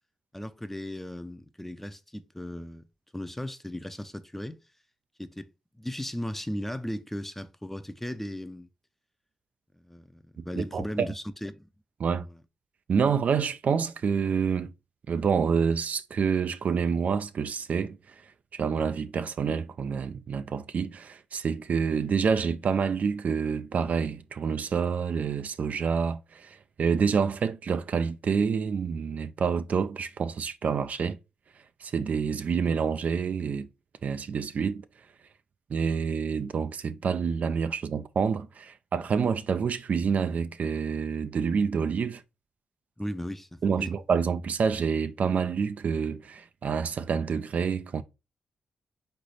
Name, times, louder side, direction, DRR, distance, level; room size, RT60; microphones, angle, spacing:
voice 1, 0.3-2.9 3.1-4.6 5.2-5.5 5.8-8.7 9.8-11.7 43.0-43.9, left 1 dB, 10° left, 0.5 m, -36 dB
voice 2, 10.4-11.1 12.0-12.3 12.9-14.7 15.1-31.2 31.8-33.7 34.0-34.9 35.7-42.2 43.6-48.0, right 6 dB, 60° right, 0.3 m, -28 dB
3.9 x 3.3 x 3.8 m
supercardioid pair, 50°, 3 cm